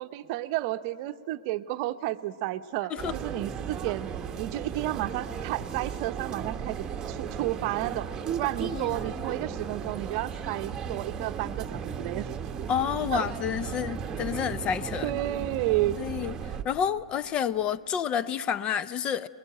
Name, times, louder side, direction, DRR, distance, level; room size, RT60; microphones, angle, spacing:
voice 1, 0.0-4.1 4.4-8.1 8.4-12.3 13.1-13.3 15.0-16.0, right 15 dB, 45° right, 0.7 m, -31 dB
sound 1, 3.0-16.6, right 7 dB, 20° right, 1.0 m, -35 dB
voice 2, 8.6-9.0 12.7-15.1 16.0-16.3 16.6-19.3, left 8 dB, 30° left, 0.5 m, -29 dB
29.5 x 20.5 x 9.1 m
hypercardioid pair, 115°, 3 cm